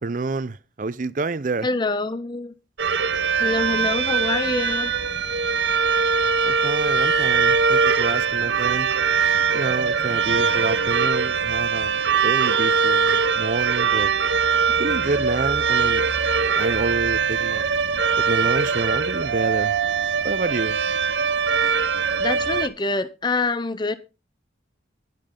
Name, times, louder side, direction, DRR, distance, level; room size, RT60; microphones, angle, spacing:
voice 1, 0.0-1.7 6.4-8.9 9.5-14.1 14.8-16.0 16.5-17.6 18.2-19.8 20.2-20.8, right 3 dB, 45° right, 0.5 m, -28 dB
voice 2, 1.6-2.5 3.4-4.9 22.2-24.0, left 3 dB, 25° left, 0.6 m, -25 dB
sound 1, 2.8-22.7, right 5 dB, 80° right, 0.9 m, -22 dB
11.5 x 10.5 x 3.8 m
head